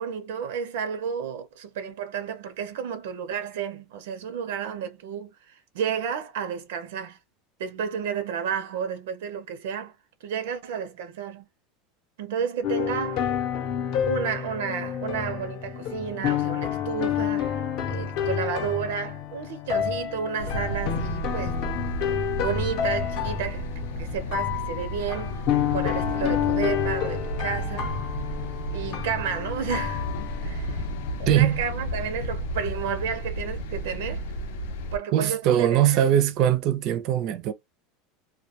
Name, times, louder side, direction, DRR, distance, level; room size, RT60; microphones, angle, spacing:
voice 1, 0.0-7.2 7.6-9.9 10.2-11.4 12.2-13.3 14.1-21.6 22.4-23.7 24.0-25.4 25.7-27.9 28.7-30.1 30.4-30.9 31.2-34.3 34.9-36.0, right 7 dB, 85° right, 0.6 m, -31 dB
sound 1, 12.6-31.2, left 9 dB, 45° left, 0.6 m, -29 dB
sound 2, 20.4-35.0, equal, 85° left, 0.6 m, -33 dB
voice 2, 31.3-31.6 35.1-37.5, right 11 dB, 40° right, 0.4 m, -21 dB
2.2 x 2.2 x 2.7 m
supercardioid pair, 170°, 0 cm